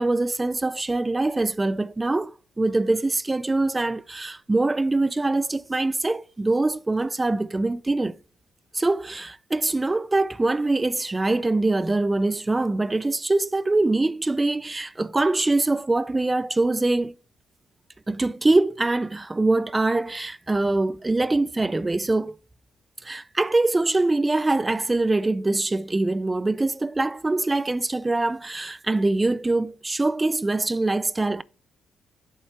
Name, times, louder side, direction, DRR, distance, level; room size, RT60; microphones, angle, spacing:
voice 1, 0.0-8.2 8.7-17.1 18.1-22.3 23.0-31.4, right 2 dB, 20° right, 0.3 m, -23 dB
7.2 x 4.3 x 5.6 m
cardioid pair, 90°, 0 cm